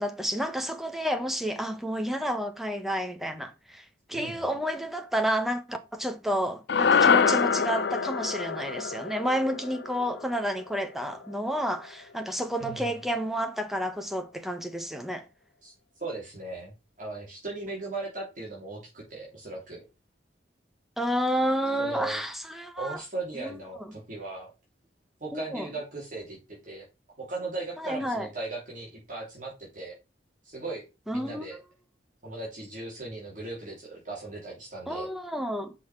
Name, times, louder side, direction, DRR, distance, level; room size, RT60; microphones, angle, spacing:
voice 1, 0.0-15.2 21.0-23.0 23.4-23.9 25.3-25.7 27.8-28.3 31.1-31.5 34.9-35.7, equal, ahead, 1.1 m, -30 dB
voice 2, 4.1-4.5 12.6-13.0 15.6-19.8 21.8-22.2 22.8-24.5 25.2-26.4 26.6-26.8 27.3-29.9 30.4-30.8 31.1-31.6 32.2-35.1, right 3 dB, 45° right, 3.2 m, -38 dB
sound 1, 6.7-11.1, left 6 dB, 65° left, 0.5 m, -25 dB
6.5 x 5.5 x 6.0 m
head